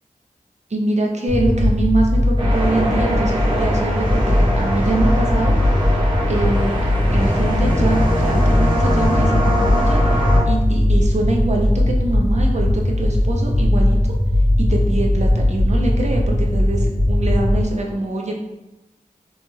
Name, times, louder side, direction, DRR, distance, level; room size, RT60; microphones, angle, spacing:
voice 1, 0.7-5.5 6.3-6.7 7.1-14.0 14.6-18.3, right 2 dB, 50° right, 0 dB, 0.6 m, -24 dB
sound 1, 1.3-17.6, left 1 dB, 75° right, 0.9 m, -18 dB
sound 2, 2.4-10.4, equal, 30° right, 1.0 m, -23 dB
3.0 x 2.3 x 2.9 m, 1.0 s
cardioid pair, 45°, 15 cm